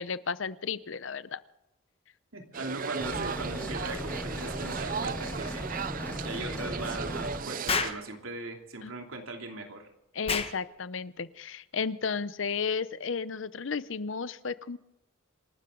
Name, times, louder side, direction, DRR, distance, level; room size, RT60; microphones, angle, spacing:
voice 1, 0.0-1.4 3.6-3.7 8.8-8.9 10.1-14.8, left 5 dB, 65° left, 16 dB, 0.7 m, -33 dB
voice 2, 2.3-5.7 6.2-9.9, right 2 dB, 85° right, 3 dB, 3.0 m, -39 dB
sound 1, 2.5-7.9, right 5 dB, 40° right, 0.5 m, -36 dB
sound 2, 3.0-7.4, left 1 dB, 10° left, 1.0 m, -37 dB
Explosion, 7.7-8.0 10.2-10.6, left 5 dB, 30° left, 1.3 m, -28 dB
27.5 x 12.5 x 3.9 m, 0.92 s
head